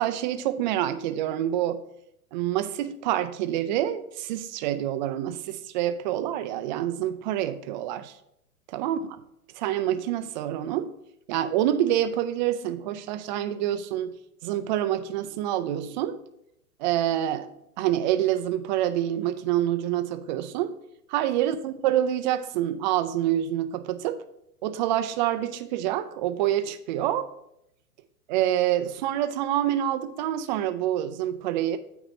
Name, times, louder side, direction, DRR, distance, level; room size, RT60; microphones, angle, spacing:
voice 1, 0.0-1.8 2.3-8.1 8.7-9.0 9.6-10.9 11.3-14.1 14.4-16.2 16.8-17.5 17.8-20.7 21.1-24.2 24.6-27.3 28.3-31.8, right 12 dB, 30° right, 10 dB, 0.5 m, -27 dB
8.7 x 3.0 x 6.2 m, 0.79 s
hypercardioid pair, 110°, 45 cm